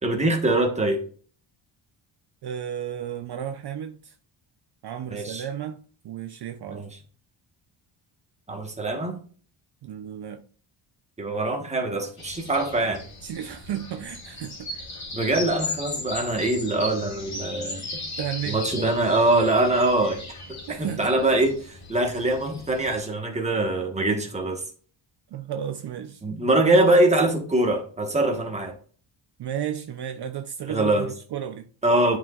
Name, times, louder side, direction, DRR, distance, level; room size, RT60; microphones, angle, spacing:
voice 1, 0.0-1.0 5.1-5.4 6.7-6.9 8.5-9.2 11.2-13.0 15.1-18.0 18.5-20.2 20.5-24.6 26.2-28.7 30.7-31.1 31.8-32.2, right 2 dB, 15° right, 1.3 m, -23 dB
voice 2, 2.4-4.2 4.8-5.8 6.0-6.9 9.8-10.4 13.2-14.7 18.2-19.0 20.7-21.1 25.3-26.2 29.4-31.7, right 9 dB, 55° right, 0.6 m, -33 dB
sound 1, 12.2-23.0, left 2 dB, 35° left, 2.7 m, -37 dB
11.0 x 5.0 x 2.4 m
wide cardioid pair, 170°, 48 cm